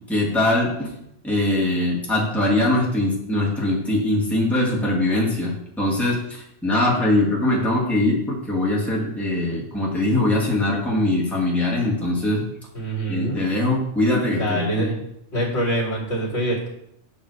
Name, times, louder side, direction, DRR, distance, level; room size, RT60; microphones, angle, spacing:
voice 1, 0.1-0.9 1.2-12.4 13.1-14.9, left 1 dB, ahead, -5 dB, 1.7 m, -22 dB
voice 2, 12.7-13.4 14.4-15.0 15.3-16.7, right 1 dB, 55° left, -6 dB, 2.5 m, -25 dB
8.5 x 3.1 x 6.5 m, 0.77 s
omnidirectional pair, 1.3 m